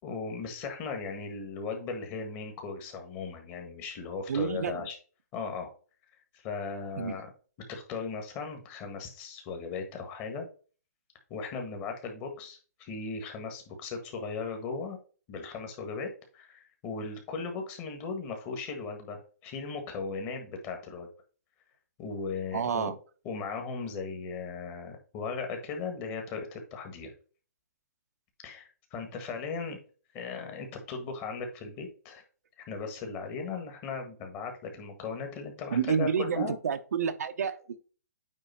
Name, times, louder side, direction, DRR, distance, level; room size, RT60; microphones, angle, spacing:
voice 1, 0.0-5.0 5.3-5.7 6.3-7.3 7.7-10.4 11.3-15.0 15.3-21.1 22.0-22.9 23.2-27.1 28.4-29.8 30.1-32.2 32.6-36.6, left 4 dB, 20° left, 1.5 m, -37 dB
voice 2, 4.3-4.9 7.0-7.2 22.5-23.0 35.7-37.8, right 7 dB, 65° right, 0.8 m, -29 dB
9.1 x 3.4 x 4.4 m
hypercardioid pair, 165°, 9 cm